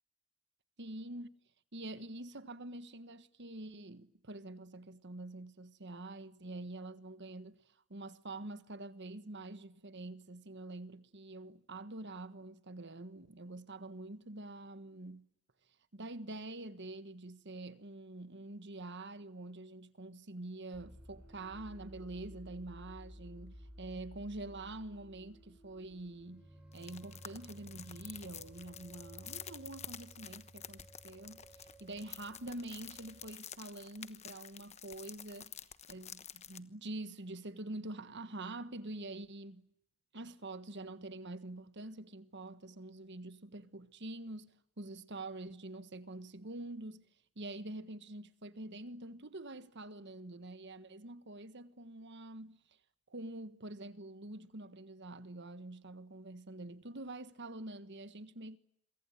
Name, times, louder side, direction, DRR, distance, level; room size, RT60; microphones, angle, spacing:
voice 1, 0.8-1.3 1.7-7.6 7.9-15.3 15.9-26.5 26.7-35.5 35.9-39.7 40.1-47.1 47.3-52.6 53.1-58.6, right 2 dB, 50° right, 1.5 m, -46 dB
sound 1, 20.7-33.3, right 1 dB, 5° right, 7.2 m, -55 dB
sound 2, 26.7-36.6, left 9 dB, 30° left, 1.2 m, -50 dB
27.0 x 24.0 x 9.1 m
head